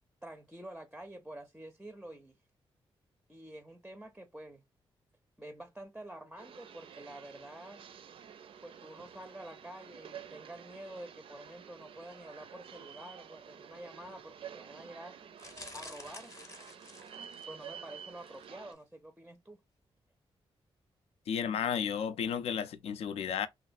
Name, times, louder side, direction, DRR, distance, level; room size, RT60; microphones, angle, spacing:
voice 1, 0.2-2.4 3.3-4.6 5.4-7.9 8.6-15.2 15.7-16.3 17.5-19.6, right 1 dB, 5° right, 0.4 m, -48 dB
sound 1, 6.4-18.7, right 8 dB, 65° right, 0.4 m, -50 dB
sound 2, 15.4-17.7 18.2-18.5 18.7-18.8, left 2 dB, 30° left, 0.7 m, -50 dB
voice 2, 21.3-23.5, left 8 dB, 85° left, 0.4 m, -33 dB
3.0 x 2.5 x 2.4 m
wide cardioid pair, 140°, 10 cm